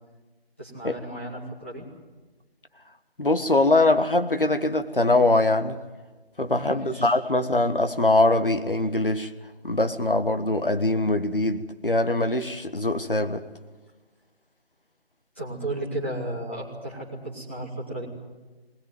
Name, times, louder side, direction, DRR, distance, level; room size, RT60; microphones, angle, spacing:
voice 1, 0.6-1.9 6.7-7.2 15.4-18.1, right 1 dB, 10° left, 2.1 m, -34 dB
voice 2, 3.2-5.8 6.4-9.3 9.6-13.4, left 2 dB, 55° left, 1.5 m, -22 dB
20.5 x 20.5 x 9.4 m
figure-of-eight pair, 175°, 32 cm